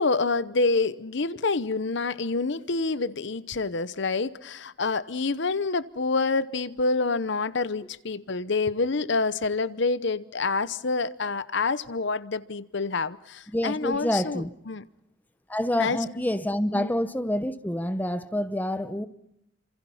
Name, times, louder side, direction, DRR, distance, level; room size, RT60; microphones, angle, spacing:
voice 1, 0.0-14.8 15.8-16.0 16.7-16.9, left 3 dB, 65° left, 0.9 m, -27 dB
voice 2, 13.5-14.5 15.5-19.1, left 1 dB, 10° left, 0.9 m, -27 dB
28.5 x 26.5 x 5.7 m
head